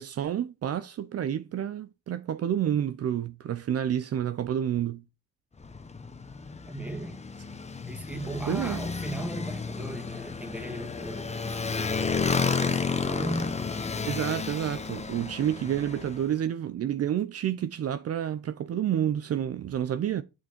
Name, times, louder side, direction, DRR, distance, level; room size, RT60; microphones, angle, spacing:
voice 1, 0.0-5.0 8.5-8.8 14.1-20.2, right 10 dB, 55° right, 0.7 m, -29 dB
Motorcycle, 5.6-16.3, left 4 dB, 20° left, 1.0 m, -32 dB
voice 2, 6.7-7.2 7.8-11.7 12.6-13.6, right 1 dB, 5° right, 2.2 m, -37 dB
7.2 x 6.0 x 4.4 m
cardioid pair, 90°, 30 cm